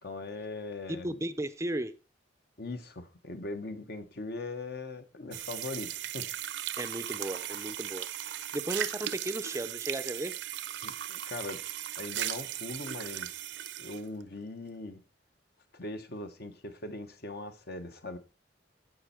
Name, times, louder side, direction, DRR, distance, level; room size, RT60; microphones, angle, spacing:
voice 1, 0.0-1.2 2.6-6.8 10.8-11.6 12.0-13.5 13.8-15.0 15.7-18.2, left 2 dB, 55° left, 1.2 m, -40 dB
voice 2, 0.9-2.0 6.7-10.3, right 1 dB, 15° right, 0.5 m, -35 dB
sound 1, 5.3-14.0, right 11 dB, 70° right, 0.7 m, -37 dB
15.5 x 5.4 x 4.4 m
head